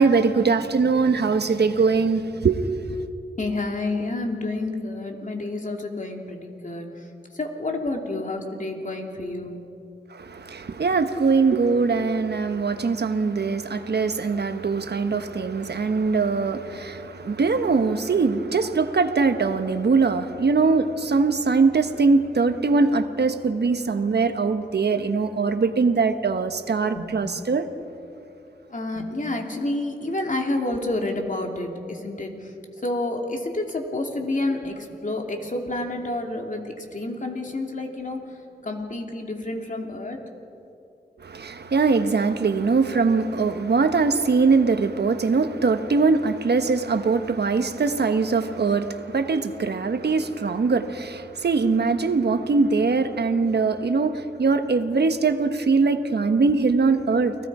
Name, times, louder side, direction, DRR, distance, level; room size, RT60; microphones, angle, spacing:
voice 1, 0.0-2.6 2.9-3.0 10.1-27.7 41.2-57.3, right 4 dB, 75° right, 1.2 m, -22 dB
voice 2, 3.4-6.9 7.3-9.6 27.0-27.1 28.7-32.3 32.8-38.2 38.6-40.2, left 2 dB, 50° left, 3.0 m, -29 dB
29.5 x 19.0 x 5.0 m
cardioid pair, 55°, 17 cm